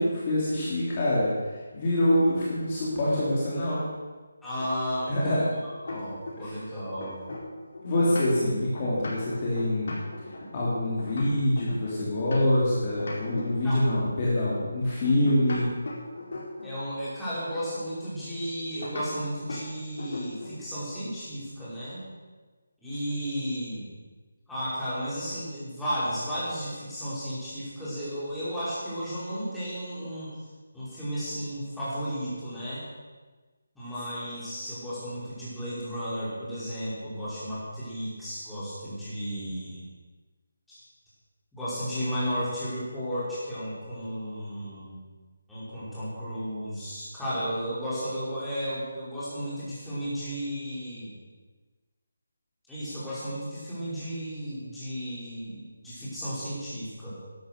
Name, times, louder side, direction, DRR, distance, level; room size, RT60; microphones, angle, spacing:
voice 1, 0.0-3.9 5.1-5.5 6.4-6.5 7.8-15.7, left 1 dB, 30° left, -7 dB, 3.5 m, -25 dB
voice 2, 4.4-5.4 5.8-7.2 13.6-13.8 16.6-22.0 22.8-23.9 24.5-30.3 30.7-32.8 33.8-39.8 40.7-40.8 41.5-45.0 45.5-51.1 52.7-57.2, equal, 5° left, -13 dB, 5.2 m, -34 dB
sound 1, 4.6-6.6 6.9-12.7 13.0-14.2 15.0-16.8 18.8-19.1 19.5-19.7 20.0-20.6, left 2 dB, 55° left, 4.7 m, -39 dB
12.5 x 12.0 x 6.9 m, 1.3 s
figure-of-eight pair, 170°, 0 cm